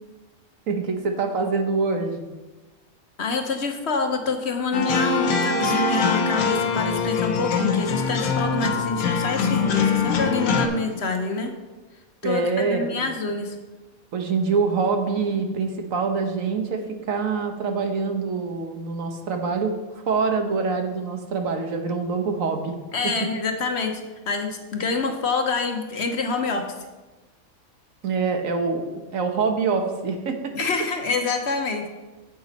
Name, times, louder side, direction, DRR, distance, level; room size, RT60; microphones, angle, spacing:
voice 1, 0.7-2.2 12.2-13.0 14.1-22.8 23.0-23.1 28.0-28.8 29.1-30.5, right 4 dB, 70° right, 5 dB, 1.3 m, -25 dB
voice 2, 3.2-11.5 12.2-13.6 22.9-24.0 24.3-26.6 30.6-31.9, left 4 dB, 55° left, 4 dB, 1.1 m, -26 dB
sound 1, 4.7-10.7, left 5 dB, 80° left, 1.4 m, -23 dB
9.3 x 8.0 x 4.1 m, 1.2 s
omnidirectional pair, 1.5 m